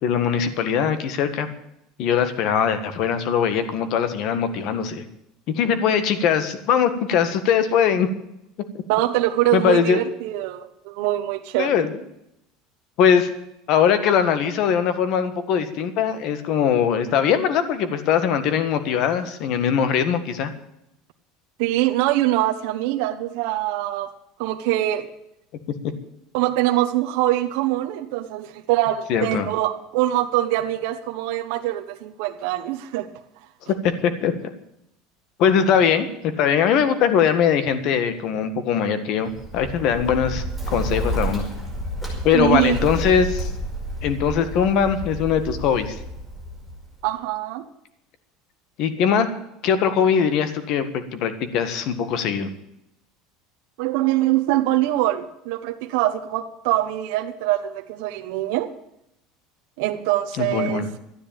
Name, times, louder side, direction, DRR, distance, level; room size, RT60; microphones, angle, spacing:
voice 1, 0.0-1.5 2.0-5.0 5.5-8.1 9.5-10.0 11.6-11.9 13.0-13.3 13.7-20.5 29.1-29.5 33.7-34.3 35.4-41.5 42.2-43.5 44.0-46.0 48.8-49.3 49.6-50.9 51.1-52.5 60.4-60.9, left 7 dB, 45° left, 11 dB, 1.6 m, -21 dB
voice 2, 8.9-11.8 21.6-24.1 24.4-25.1 26.3-33.1 42.3-42.9 47.0-47.6 53.8-58.7 59.8-60.9, right 15 dB, 65° right, 4 dB, 1.0 m, -23 dB
Bird, 39.3-47.1, equal, 10° left, 5.7 m, -30 dB
13.0 x 10.0 x 8.8 m, 0.82 s
cardioid pair, 170°, 0 cm